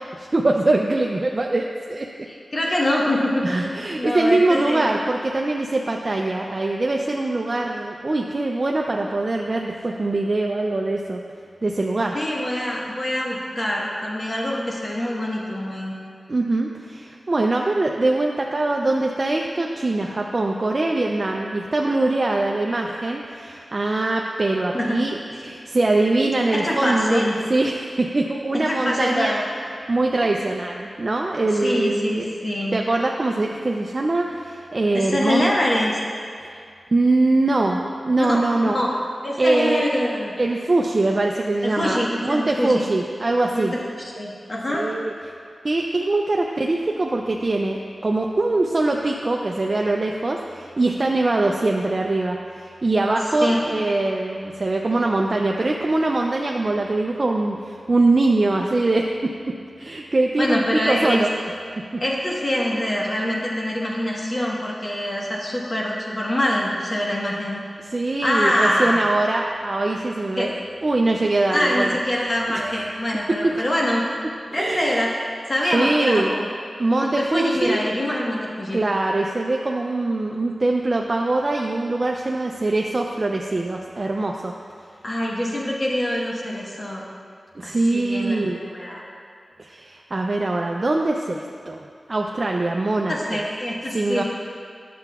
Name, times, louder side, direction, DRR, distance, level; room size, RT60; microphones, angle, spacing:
voice 1, 0.2-2.1 3.4-11.2 11.6-12.2 16.3-27.2 27.5-29.3 29.9-32.3 32.7-35.5 36.9-38.8 39.4-39.8 40.4-43.7 44.7-45.1 45.6-59.3 59.8-61.3 67.8-70.5 70.8-71.9 72.5-72.8 73.4-73.6 74.5-75.0 75.7-76.3 76.8-77.8 78.7-84.5 87.6-88.6 89.6-93.5 93.9-94.2, right 2 dB, 45° right, 1 dB, 0.4 m, -22 dB
voice 2, 2.3-4.9 12.1-15.9 24.7-25.0 26.5-27.4 28.7-29.4 31.6-32.8 34.9-36.0 38.2-38.9 39.2-40.3 41.6-42.9 43.5-43.7 44.0-44.8 53.4-53.6 60.4-61.2 62.0-67.6 68.2-69.0 70.4-70.5 71.5-74.0 74.5-75.1 75.5-76.5 76.9-78.8 85.0-87.0 87.6-89.1 93.1-94.2, left 1 dB, 40° left, -4 dB, 1.3 m, -24 dB
10.0 x 6.7 x 2.3 m, 2.2 s
wide cardioid pair, 70°, 0 cm